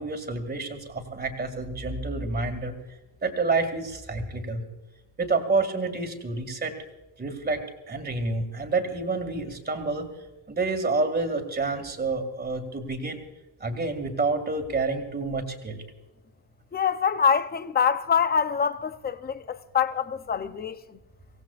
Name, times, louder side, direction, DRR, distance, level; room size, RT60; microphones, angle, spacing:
voice 1, 0.0-2.7 3.2-4.6 5.2-6.7 7.2-10.1 10.5-13.2 13.6-15.8, right 3 dB, 20° right, 2.2 m, -28 dB
voice 2, 16.7-20.8, left 7 dB, 20° left, 0.6 m, -25 dB
24.0 x 17.5 x 2.4 m
cardioid pair, 145°, 48 cm